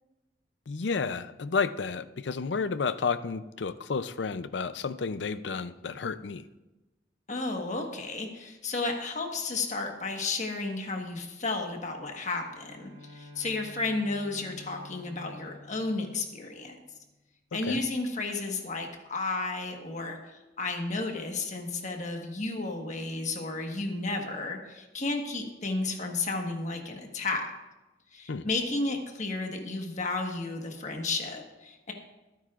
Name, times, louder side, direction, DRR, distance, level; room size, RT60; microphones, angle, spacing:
voice 1, 0.7-6.4 17.7-17.8 28.3-28.5, left 5 dB, 80° left, 13 dB, 0.5 m, -31 dB
voice 2, 7.3-16.8 17.5-27.5 28.1-31.9, left 3 dB, 40° left, 3 dB, 1.4 m, -33 dB
Bowed string instrument, 12.4-17.1, left 2 dB, 65° right, 2.0 m, -50 dB
24.0 x 9.5 x 2.5 m, 1.1 s
head